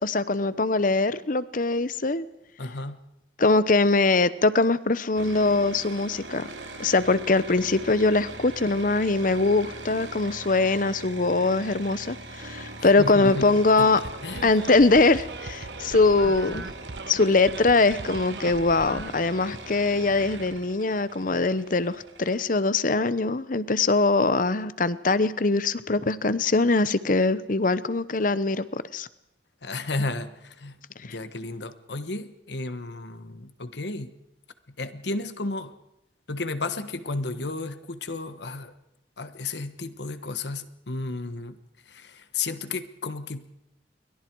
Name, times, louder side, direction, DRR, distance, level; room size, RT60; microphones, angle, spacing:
voice 1, 0.0-2.2 3.4-6.5 6.8-14.0 14.4-16.6 17.1-29.1 31.1-31.2, left 3 dB, 45° left, 15 dB, 0.9 m, -22 dB
voice 2, 2.6-3.0 12.8-13.5 13.8-13.9 14.2-14.6 29.6-34.1 34.8-35.7 36.3-38.7 39.2-41.6 41.8-43.5, left 3 dB, 70° left, 10 dB, 1.3 m, -33 dB
sound 1, 5.2-22.4, right 2 dB, 90° right, 2.8 m, -41 dB
sound 2, 14.0-19.1, right 3 dB, 65° right, 0.9 m, -39 dB
29.0 x 23.5 x 4.7 m, 0.86 s
head